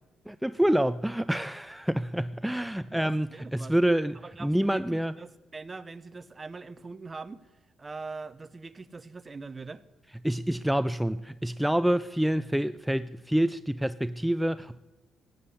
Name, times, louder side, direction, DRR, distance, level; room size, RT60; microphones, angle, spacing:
voice 1, 0.3-3.3 3.5-5.1 10.2-14.8, right 1 dB, 5° right, 0.4 m, -27 dB
voice 2, 2.9-3.7 4.2-7.4 7.8-9.8, right 4 dB, 25° right, 0.8 m, -42 dB
15.5 x 9.5 x 8.3 m
cardioid pair, 90°, 0 cm